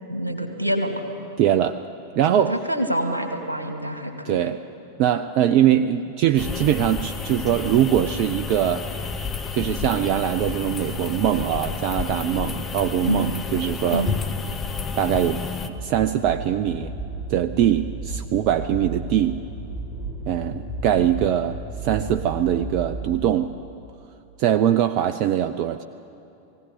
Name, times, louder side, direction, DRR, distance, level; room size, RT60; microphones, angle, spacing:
voice 1, 0.1-1.1 2.3-4.5 13.1-13.4 13.9-14.2, right 1 dB, 85° right, 4 dB, 2.2 m, -26 dB
voice 2, 1.4-1.8 2.2-2.6 4.2-4.6 5.0-8.8 9.5-14.1 14.9-15.4 15.8-16.9 17.3-19.4 20.3-23.5 24.4-25.8, right 10 dB, 45° right, 9 dB, 0.6 m, -22 dB
sound 1, 6.4-15.7, left 5 dB, 20° left, 1.2 m, -30 dB
sound 2, 15.8-23.1, right 2 dB, 75° left, 5.9 m, -33 dB
20.0 x 16.5 x 9.8 m, 2.8 s
figure-of-eight pair, 90°, 0 cm